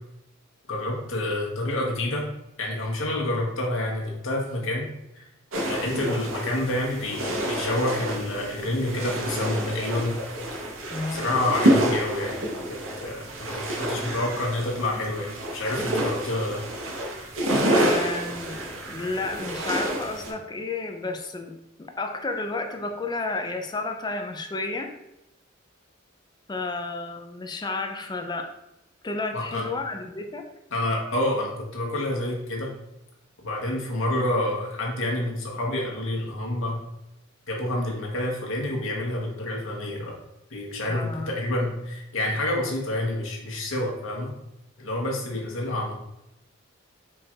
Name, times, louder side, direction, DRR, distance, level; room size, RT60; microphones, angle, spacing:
voice 1, 0.7-2.3 2.6-4.9 5.1-5.2 5.6-10.2 11.1-12.3 12.7-16.6 29.3-29.6 30.7-32.7 33.4-36.8 37.5-40.2 40.5-44.3 44.8-45.9, left 1 dB, 70° left, -2 dB, 1.1 m, -28 dB
sound 1, 5.5-20.3, right 1 dB, 75° right, 0.9 m, -28 dB
voice 2, 10.9-11.2 17.7-21.5 21.8-24.9 26.5-28.5 29.0-30.4 40.9-41.3, left 3 dB, 20° left, 5 dB, 0.4 m, -31 dB
4.5 x 2.4 x 4.4 m, 0.87 s
head